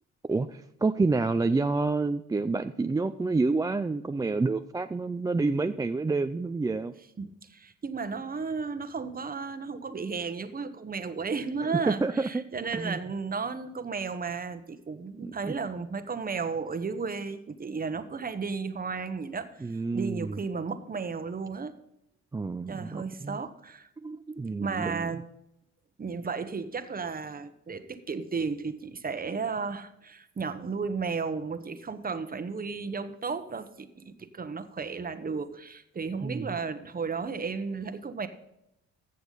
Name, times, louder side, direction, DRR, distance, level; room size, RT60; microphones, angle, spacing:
voice 1, 0.3-6.9 11.7-12.4 12.7-13.0 15.2-15.5 19.6-20.4 22.3-23.4 24.0-25.1 36.2-36.5, right 3 dB, 15° right, 9 dB, 0.3 m, -28 dB
voice 2, 7.2-21.7 22.7-23.9 24.6-25.2 26.0-38.3, right 5 dB, 30° right, 10 dB, 1.0 m, -34 dB
15.0 x 6.9 x 4.0 m, 0.82 s
cardioid pair, 90°, 30 cm